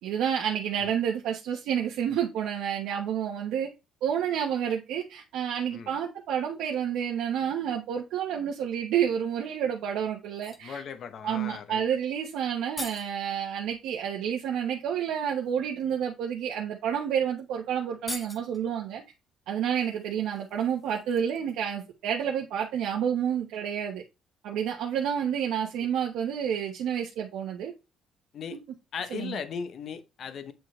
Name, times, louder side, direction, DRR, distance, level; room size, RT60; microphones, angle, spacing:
voice 1, 0.0-3.7 4.0-10.8 11.2-19.0 19.5-24.0 24.4-27.7 29.1-29.4, right 8 dB, 80° right, 1.1 m, -29 dB
sound 1, 10.2-10.7 12.2-12.3 12.5-13.2 14.6-14.7 15.3-15.5 16.4-16.5 16.9-17.0 17.3-17.4 17.9-18.6 19.7-21.8 22.1-22.2, left 2 dB, 15° left, 0.9 m, -43 dB
voice 2, 10.6-11.8 25.8-25.9 28.3-28.6 28.9-30.5, left 6 dB, 45° left, 0.8 m, -37 dB
8.2 x 4.6 x 3.2 m
cardioid pair, 165°, 0 cm